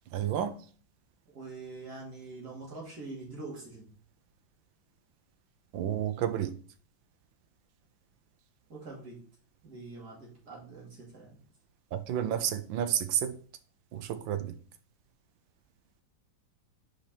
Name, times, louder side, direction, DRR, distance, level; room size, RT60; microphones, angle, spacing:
voice 1, 0.1-0.5 5.7-6.6 11.9-13.4 13.9-14.5, right 10 dB, 80° right, 1.4 m, -30 dB
voice 2, 1.3-3.9 8.7-9.2 9.6-11.4, right 3 dB, 50° right, 3.0 m, -44 dB
5.1 x 5.1 x 4.3 m
omnidirectional pair, 2.2 m